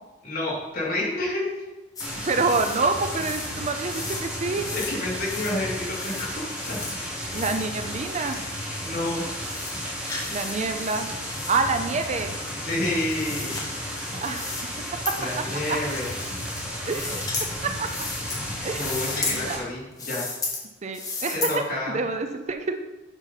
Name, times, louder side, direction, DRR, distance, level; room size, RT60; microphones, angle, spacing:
voice 1, 0.2-1.4 4.7-6.8 8.1-8.2 8.8-9.2 12.5-13.6 15.2-16.1 18.8-20.3 21.3-22.0, left 1 dB, 50° left, -5 dB, 2.8 m, -29 dB
sound 1, 2.0-2.1 2.4-2.8 3.1-3.5 3.9-4.2 4.6-4.9 5.2-5.6 5.9-6.3 6.6-6.9 7.3-7.7 8.3-8.4 8.8-8.9 9.3-9.7 10.1-10.5 10.8-11.6 12.4-13.6 14.2-14.6 15.1-15.2 15.7-16.6 16.9-17.5 17.9-18.4 18.7-19.4 19.9-20.6 20.9-21.5, left 4 dB, 20° left, 1.5 m, -34 dB
sound 2, 2.0-19.6, equal, 5° right, 1.7 m, -33 dB
voice 2, 2.1-4.8 7.3-8.4 10.3-11.1 11.5-12.3 14.2-14.6 15.1-15.2 15.7-15.8 16.8-17.2 17.6-17.9 18.6-18.8 19.3-19.6 20.8-22.8, right 4 dB, 35° right, 7 dB, 0.5 m, -27 dB
8.1 x 5.7 x 4.1 m, 1.1 s
head